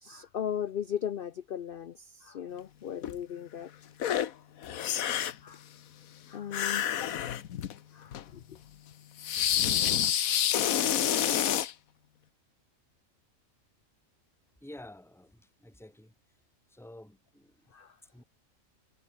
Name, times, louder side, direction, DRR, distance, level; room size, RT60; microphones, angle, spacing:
voice 1, 0.0-3.7 5.4-5.6 6.3-7.1 7.9-8.6 17.7-18.0, left 9 dB, 55° left, 0.7 m, -37 dB
sound 1, 3.0-3.2 4.0-4.3 4.6-5.5 6.5-7.8 8.1-8.2 9.2-11.7, left 10 dB, 85° left, 1.4 m, -28 dB
voice 2, 14.6-16.1 16.7-17.7 18.1-18.2, left 1 dB, ahead, 3.2 m, -50 dB
omnidirectional pair, 1.4 m